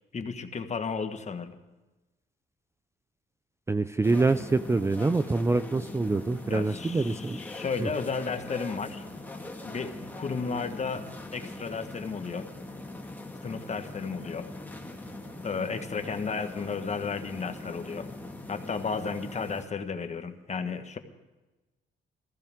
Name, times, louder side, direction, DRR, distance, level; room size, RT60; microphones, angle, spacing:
voice 1, 0.1-1.6 6.5-9.0 9.6-11.1 11.3-12.5 13.4-14.5 15.4-18.1 18.5-21.0, left 5 dB, 35° left, 7 dB, 1.2 m, -33 dB
voice 2, 3.7-7.4 7.8-7.9, right 3 dB, 15° right, 12 dB, 0.4 m, -25 dB
sound 1, 4.0-19.6, left 2 dB, 10° left, 1.7 m, -41 dB
22.0 x 15.0 x 3.6 m, 1.1 s
cardioid pair, 90°, 20 cm